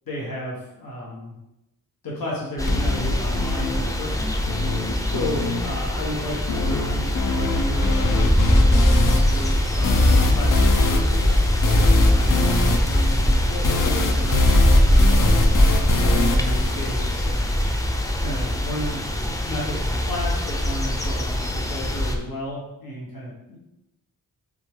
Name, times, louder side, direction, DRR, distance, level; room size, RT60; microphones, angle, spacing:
voice 1, 0.0-1.3 2.0-4.3 5.0-10.0 10.3-11.3 11.7-17.7 18.2-23.6, equal, 85° left, -5 dB, 1.6 m, -33 dB
sound 1, 2.6-22.1, left 1 dB, 10° left, 0.5 m, -21 dB
sound 2, 2.7-17.7, left 3 dB, 70° left, 0.7 m, -25 dB
6.8 x 3.8 x 3.7 m, 0.93 s
wide cardioid pair, 180°, 34 cm